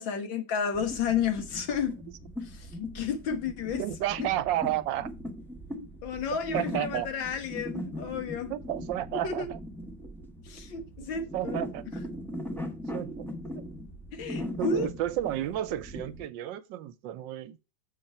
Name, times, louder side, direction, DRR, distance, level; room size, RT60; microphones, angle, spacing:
voice 1, 0.0-1.9 2.4-3.8 4.2-4.3 5.7-8.5 9.1-9.5 10.5-11.6 14.1-14.9, left 6 dB, 90° left, 2.0 m, -32 dB
sound 1, 0.7-16.3, equal, 5° left, 0.4 m, -39 dB
voice 2, 3.8-5.1 6.5-7.1 8.5-9.6 11.0-11.8 12.6-13.3 14.6-17.6, right 13 dB, 85° right, 1.3 m, -32 dB
6.9 x 6.0 x 4.2 m
omnidirectional pair, 2.0 m